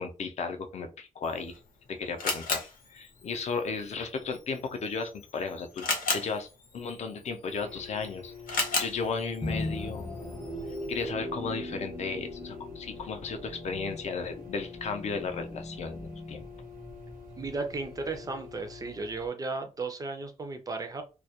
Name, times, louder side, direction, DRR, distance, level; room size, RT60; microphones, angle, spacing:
voice 1, 0.0-1.6 1.9-6.5 6.7-10.1 10.9-16.5, left 4 dB, 55° left, 7 dB, 0.4 m, -35 dB
Camera, 1.2-11.1, left 4 dB, 90° left, 0.7 m, -37 dB
sound 1, 7.5-19.3, left 6 dB, 90° right, 0.6 m, -47 dB
sound 2, 9.4-18.2, left 1 dB, 25° left, 0.7 m, -40 dB
voice 2, 17.4-21.0, right 3 dB, 25° right, 7 dB, 0.3 m, -35 dB
2.2 x 2.0 x 2.7 m, 0.31 s
wide cardioid pair, 175°, 14 cm